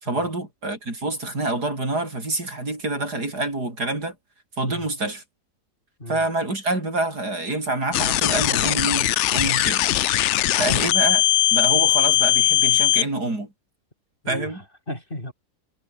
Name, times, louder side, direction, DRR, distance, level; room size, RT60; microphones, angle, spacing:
voice 1, 0.0-4.2 4.6-5.2 6.1-9.9 10.6-11.2 11.5-13.5 14.3-14.6, right 2 dB, 75° right, 7.3 m, -27 dB
sound 1, 7.9-13.0, left 13 dB, 70° left, 0.7 m, -20 dB
voice 2, 14.2-15.3, left 1 dB, 30° left, 7.8 m, -36 dB
omnidirectional pair, 1.7 m